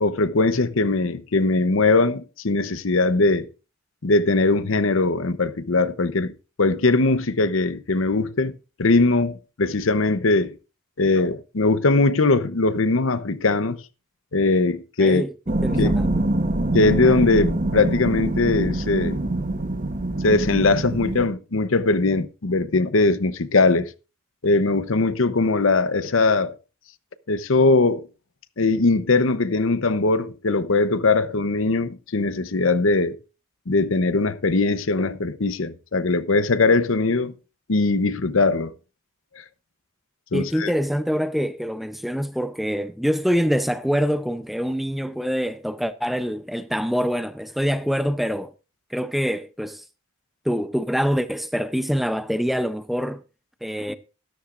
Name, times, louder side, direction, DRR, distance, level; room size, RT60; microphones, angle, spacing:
voice 1, 0.0-3.5 4.0-6.3 6.6-8.5 8.8-10.5 11.0-13.8 14.3-15.2 15.8-16.0 16.7-19.2 20.2-23.9 24.4-26.5 27.3-28.1 28.6-33.2 33.7-37.3 37.7-38.7 40.3-40.7, left 3 dB, 70° left, 0.8 m, -20 dB
voice 2, 15.0-16.1 40.3-48.5 48.9-49.8 50.4-53.2 53.6-53.9, equal, ahead, 0.6 m, -25 dB
sound 1, 15.5-21.3, right 1 dB, 40° right, 1.1 m, -24 dB
13.0 x 13.0 x 2.5 m
head